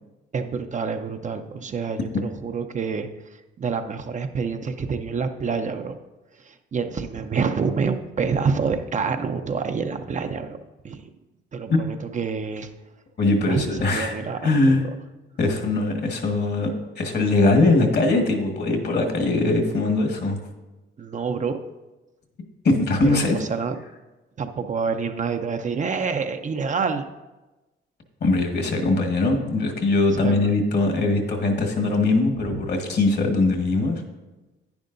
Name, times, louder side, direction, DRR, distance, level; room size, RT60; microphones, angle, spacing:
voice 1, 0.3-3.1 3.6-6.0 6.4-10.6 10.8-11.0 11.5-12.7 13.5-14.5 21.0-21.6 23.0-23.7 24.4-27.1 30.2-30.5 32.4-32.6, right 5 dB, 40° right, 7 dB, 0.6 m, -27 dB
voice 2, 13.2-14.1 14.4-14.8 15.4-20.4 22.6-23.4 28.2-34.0, left 2 dB, 55° left, 3 dB, 1.7 m, -21 dB
10.5 x 9.7 x 2.6 m, 1.1 s
cardioid pair, 90°, 20 cm